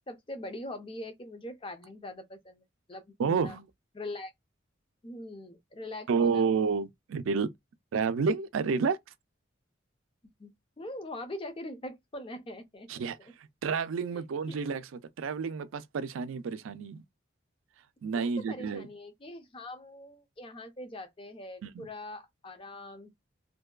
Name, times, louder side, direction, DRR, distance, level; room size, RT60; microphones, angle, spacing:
voice 1, 0.1-3.6 3.9-4.3 5.0-6.5 10.4-13.3 14.1-14.6 18.2-23.1, left 1 dB, 25° left, 0.5 m, -42 dB
voice 2, 3.2-3.6 6.1-7.5 7.9-9.0 12.9-14.8 15.2-17.0 18.0-18.9 21.6-21.9, right 5 dB, 85° right, 0.4 m, -30 dB
2.6 x 2.2 x 2.3 m
head